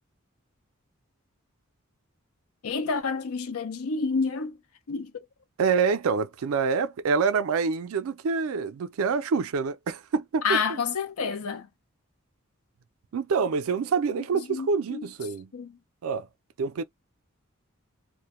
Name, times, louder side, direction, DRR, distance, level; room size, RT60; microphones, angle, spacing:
voice 1, 2.6-4.6 4.9-5.1 10.4-11.7 14.3-15.1 15.5-15.8, left 5 dB, 80° left, 0.5 m, -29 dB
voice 2, 5.6-10.6 13.1-15.5 16.0-16.3 16.6-16.8, right 5 dB, 75° right, 0.4 m, -26 dB
2.1 x 2.1 x 2.9 m
head